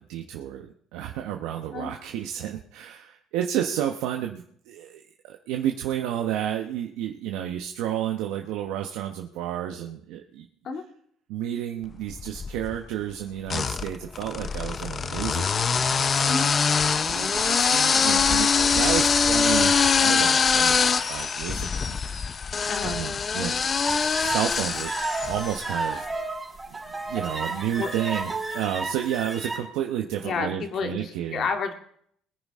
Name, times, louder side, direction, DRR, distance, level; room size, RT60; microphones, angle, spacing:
voice 1, 0.0-10.5 11.3-16.4 16.9-19.7 20.0-22.4 22.8-23.6 23.9-24.9 25.2-26.1 27.0-31.5, right 11 dB, 90° right, 3 dB, 1.1 m, -31 dB
sound 1, 12.1-12.8 13.5-25.8, left 5 dB, 35° left, 0.6 m, -23 dB
voice 2, 22.7-23.0 27.8-27.9 30.2-31.7, left 4 dB, 50° left, 5 dB, 2.1 m, -30 dB
sound 2, 23.9-29.6, right 3 dB, 15° right, 3.9 m, -32 dB
21.5 x 9.9 x 3.7 m, 0.65 s
cardioid pair, 115°, 0 cm